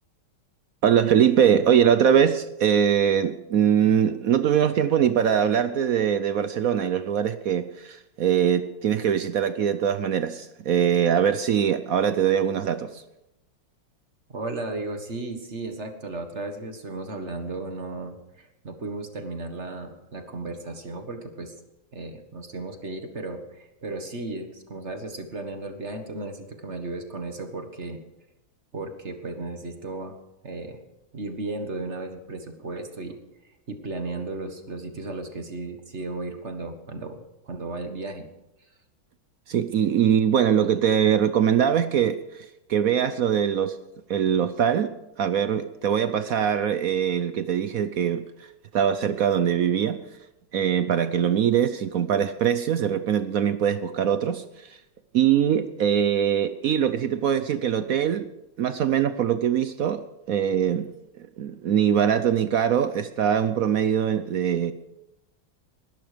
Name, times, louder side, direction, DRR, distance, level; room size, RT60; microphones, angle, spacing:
voice 1, 0.8-13.0 39.5-42.2 42.7-43.8 44.1-48.2 48.7-50.0 50.5-54.4 55.1-58.3 58.6-60.0 60.3-60.9 61.2-64.7, right 8 dB, 70° right, 11 dB, 0.8 m, -22 dB
voice 2, 14.3-21.5 21.9-28.0 28.7-30.1 30.4-30.8 31.1-33.2 33.7-37.2 37.4-38.3, right 2 dB, 35° right, 6 dB, 1.7 m, -35 dB
21.0 x 12.0 x 5.1 m, 0.89 s
omnidirectional pair, 2.3 m